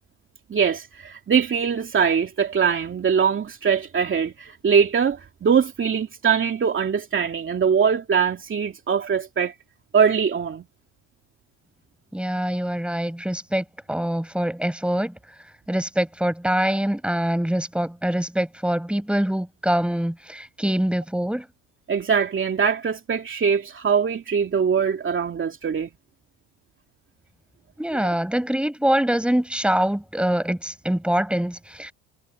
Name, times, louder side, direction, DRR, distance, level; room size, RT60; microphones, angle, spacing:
voice 1, 0.5-9.5 9.9-10.6 21.9-25.9 27.9-28.1, right 6 dB, 30° right, 2.7 m, -22 dB
voice 2, 12.1-15.1 15.7-21.5 27.8-31.9, right 1 dB, 5° right, 7.0 m, -24 dB
supercardioid pair, 100°, 39 cm